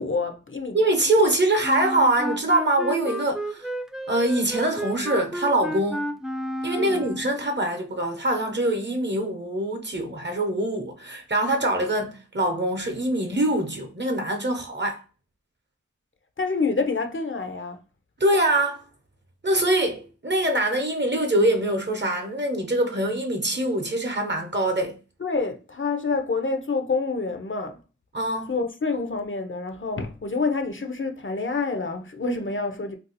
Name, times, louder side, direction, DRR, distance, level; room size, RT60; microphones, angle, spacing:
voice 1, 0.0-0.8 6.8-7.1 16.4-17.8 25.2-27.8 28.5-33.0, left 4 dB, 40° left, 0.6 m, -27 dB
voice 2, 0.7-3.7 4.1-6.1 6.6-15.0 18.2-18.8 19.4-25.0 28.1-28.5, right 1 dB, 40° right, 0.8 m, -24 dB
Wind instrument woodwind instrument, 1.6-7.4, equal, ahead, 0.3 m, -32 dB
2.6 x 2.4 x 3.9 m
wide cardioid pair, 45°, 29 cm